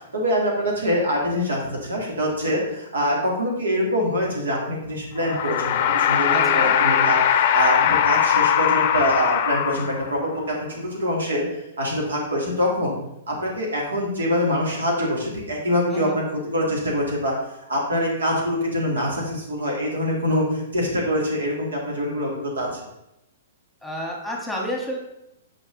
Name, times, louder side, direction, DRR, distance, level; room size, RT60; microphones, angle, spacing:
voice 1, 0.1-13.0 13.3-17.3 17.7-22.7, equal, 80° right, -2 dB, 2.1 m, -24 dB
sound 1, 5.2-10.2, left 9 dB, 50° left, 0.5 m, -20 dB
voice 2, 6.3-6.8 15.9-16.2 23.8-25.0, equal, ahead, -1 dB, 1.4 m, -30 dB
6.4 x 5.0 x 3.8 m, 0.85 s
hypercardioid pair, 125°, 0 cm